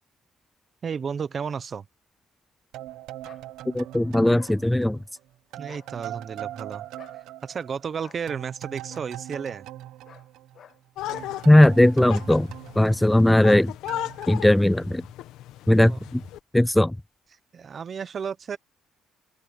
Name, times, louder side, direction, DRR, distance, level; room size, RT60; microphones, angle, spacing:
voice 1, 0.8-1.9 5.6-6.8 7.4-9.7 15.8-16.0 17.5-18.6, right 6 dB, 35° right, 1.0 m, -32 dB
sound 1, 2.7-5.2 5.5-10.8 11.1-13.6 13.9-14.2, right 13 dB, 75° right, 1.3 m, -41 dB
sound 2, 3.2-3.5 4.4-4.6 5.6-5.9 7.0-7.2 8.0-8.2 8.9-9.1 10.0-10.3 10.5-10.8 11.1-11.3, left 9 dB, 50° left, 1.4 m, -50 dB
voice 2, 3.7-5.0 11.5-12.5 12.8-13.7 14.3-15.0 15.7-16.2 16.5-17.0, left 1 dB, 5° left, 0.3 m, -18 dB
sound 3, 11.0-16.4, left 14 dB, 80° left, 1.2 m, -37 dB
open air
cardioid pair, 135°, 0 cm